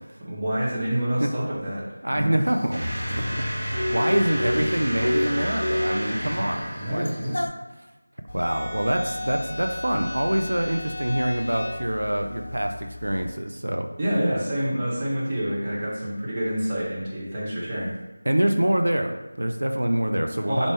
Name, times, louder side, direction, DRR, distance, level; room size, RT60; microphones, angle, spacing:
voice 1, 0.2-2.4 6.8-7.4 14.0-17.9 20.4-20.7, equal, 15° right, -7 dB, 0.6 m, -27 dB
voice 2, 2.0-2.8 3.1-7.1 8.3-12.7 13.0-13.9 18.3-20.7, right 1 dB, 85° right, 4 dB, 0.4 m, -25 dB
sound 1, 2.5-7.5, equal, 75° left, 0.4 m, -29 dB
sound 2, 2.7-7.4, equal, 50° right, 0.7 m, -31 dB
sound 3, 8.3-13.3, left 1 dB, 45° left, 0.8 m, -36 dB
3.4 x 2.5 x 3.2 m, 1.1 s
figure-of-eight pair, 175°, 0 cm